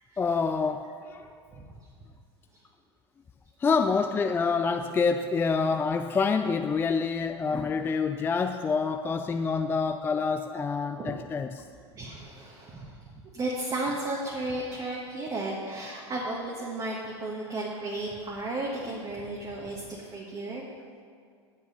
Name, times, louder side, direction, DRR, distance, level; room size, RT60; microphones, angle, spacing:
voice 1, 0.2-1.3 3.6-11.6, left 5 dB, 15° left, 8 dB, 0.3 m, -27 dB
voice 2, 11.9-13.0 13.3-19.8 20.1-20.7, right 2 dB, 25° right, -2 dB, 1.4 m, -33 dB
8.5 x 7.6 x 5.5 m, 2.2 s
figure-of-eight pair, 85°, 15 cm